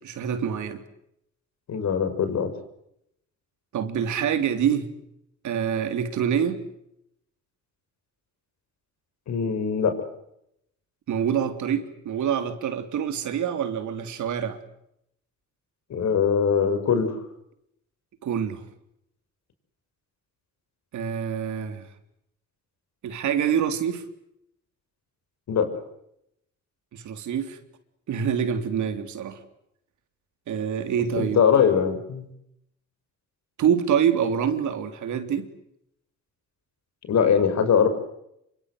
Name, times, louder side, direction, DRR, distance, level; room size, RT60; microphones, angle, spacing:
voice 1, 0.0-0.8 3.7-4.9 5.4-6.6 11.1-14.6 18.2-18.6 20.9-21.9 23.0-24.0 26.9-27.6 28.1-29.4 30.5-31.4 33.6-35.5, right 8 dB, 75° right, 3.6 m, -26 dB
voice 2, 1.7-2.5 9.3-10.0 15.9-17.2 25.5-25.7 31.2-32.3 37.1-37.9, left 7 dB, 65° left, 5.8 m, -22 dB
27.5 x 25.0 x 8.0 m
cardioid pair, 90°, 30 cm